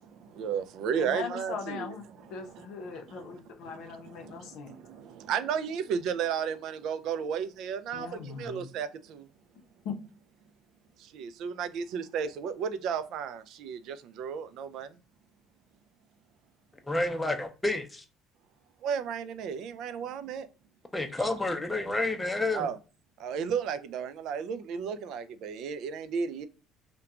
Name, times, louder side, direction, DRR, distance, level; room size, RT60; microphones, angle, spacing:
voice 1, 0.4-1.9 5.3-8.1 8.4-8.9 11.2-13.4 13.6-13.8 14.2-14.9 18.8-20.4 22.5-22.7 23.2-26.5, right 7 dB, 70° right, 0.3 m, -32 dB
voice 2, 0.9-2.0 2.3-4.8 7.9-8.7 9.8-10.0, left 5 dB, 70° left, 0.6 m, -39 dB
voice 3, 16.9-18.0 20.9-22.7, left 2 dB, 10° left, 0.6 m, -29 dB
2.8 x 2.2 x 2.3 m
cardioid pair, 100°, 0 cm